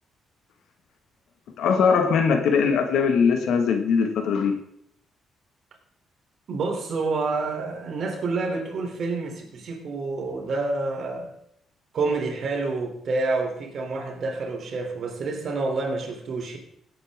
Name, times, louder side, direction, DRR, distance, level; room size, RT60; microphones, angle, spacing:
voice 1, 1.6-4.6, left 6 dB, 75° left, 6 dB, 1.8 m, -21 dB
voice 2, 6.5-11.3 11.9-16.6, right 3 dB, 55° right, 2 dB, 3.3 m, -28 dB
16.5 x 8.6 x 3.7 m, 0.71 s
cardioid pair, 90°, 0 cm